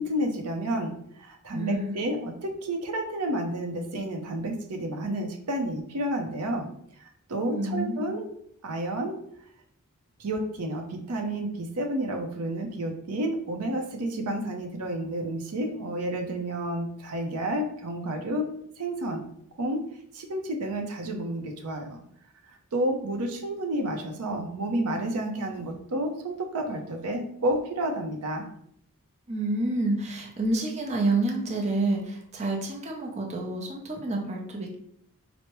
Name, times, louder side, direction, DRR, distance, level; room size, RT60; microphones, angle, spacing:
voice 1, 0.0-6.7 7.0-8.3 8.6-9.2 10.2-18.5 18.8-19.2 19.5-19.9 20.1-22.0 22.7-28.4, right 1 dB, 85° right, 4 dB, 0.6 m, -30 dB
voice 2, 1.5-2.0 7.4-8.1 29.3-34.7, right 2 dB, 30° right, 0 dB, 0.6 m, -28 dB
4.5 x 2.0 x 3.0 m, 0.69 s
head